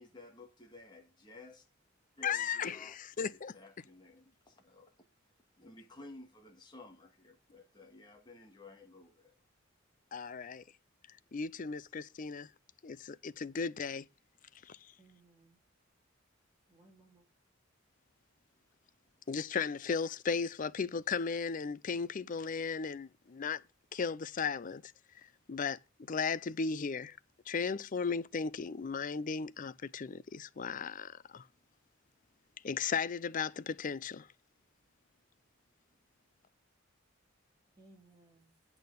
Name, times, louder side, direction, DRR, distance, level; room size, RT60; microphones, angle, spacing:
voice 1, 0.0-1.7 2.2-3.0 3.3-4.9 5.6-9.4, left 3 dB, 20° left, 1.8 m, -54 dB
voice 2, 2.2-3.5 10.1-10.6 11.3-12.5 12.8-14.1 14.7-14.8 19.3-23.6 23.9-24.9 25.5-25.8 26.1-27.2 27.5-31.4 32.6-34.3, left 5 dB, 40° left, 0.5 m, -36 dB
voice 3, 15.0-15.6 16.7-17.3 37.8-38.6, right 2 dB, 20° right, 3.5 m, -62 dB
8.6 x 6.1 x 6.6 m
head